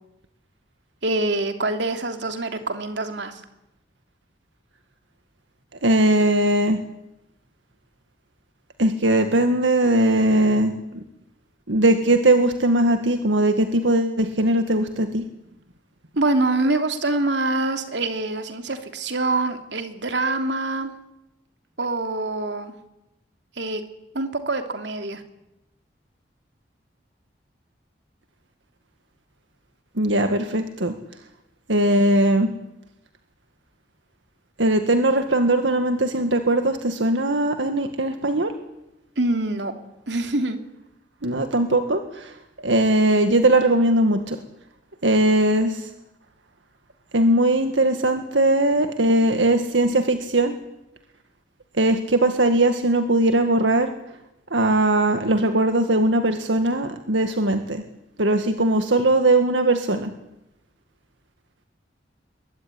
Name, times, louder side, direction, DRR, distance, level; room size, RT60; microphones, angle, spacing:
voice 1, 1.0-3.4 16.2-20.9 21.8-22.7 23.6-23.8 24.1-25.2 39.2-39.7 40.1-40.6, right 2 dB, 70° right, 7 dB, 3.0 m, -25 dB
voice 2, 5.8-6.8 8.8-11.0 11.7-15.2 30.0-31.0 31.7-32.5 34.6-38.5 41.2-42.3 42.6-44.4 45.0-45.9 47.1-50.5 51.8-53.9 54.5-57.8 58.2-60.1, right 1 dB, 90° right, 7 dB, 1.9 m, -20 dB
25.0 x 22.0 x 9.9 m, 0.91 s
head